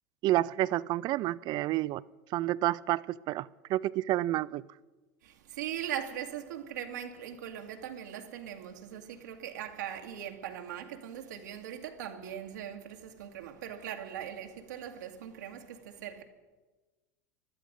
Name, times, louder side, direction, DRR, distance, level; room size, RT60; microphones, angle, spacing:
voice 1, 0.2-2.0 2.3-4.6, right 15 dB, 50° right, 0.5 m, -29 dB
voice 2, 5.2-16.2, right 10 dB, 80° right, 2.0 m, -40 dB
21.5 x 13.0 x 5.2 m
hypercardioid pair, 95°, 9 cm